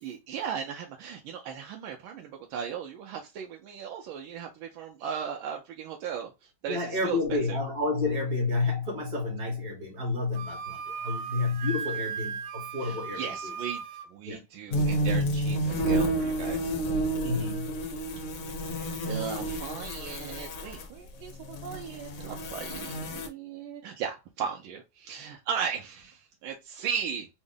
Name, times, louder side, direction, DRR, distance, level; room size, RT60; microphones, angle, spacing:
voice 1, 0.0-7.6 12.8-13.8 14.1-16.7 18.8-27.3, right 7 dB, 90° right, 1.4 m, -37 dB
voice 2, 6.7-13.2 14.2-14.4 17.2-17.8, left 3 dB, 50° right, 1.6 m, -30 dB
Wind instrument woodwind instrument, 10.3-14.1, right 6 dB, 70° right, 1.1 m, -37 dB
sound 1, 14.7-20.8 21.4-23.3, right 1 dB, 75° left, 0.7 m, -30 dB
3.6 x 2.1 x 3.6 m
omnidirectional pair, 2.1 m